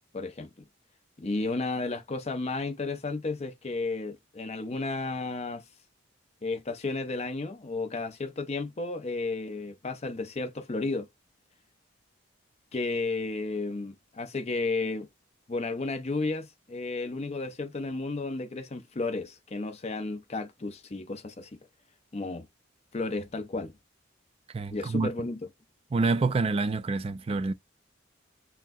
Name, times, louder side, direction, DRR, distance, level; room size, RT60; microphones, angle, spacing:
voice 1, 0.1-0.5 1.2-5.6 6.4-11.1 12.7-15.1 15.5-21.5 22.1-22.5 22.9-23.7 24.7-25.4, left 3 dB, 35° left, 0.5 m, -33 dB
voice 2, 24.5-25.1 25.9-27.5, right 3 dB, 30° right, 0.3 m, -27 dB
5.7 x 2.0 x 2.6 m
head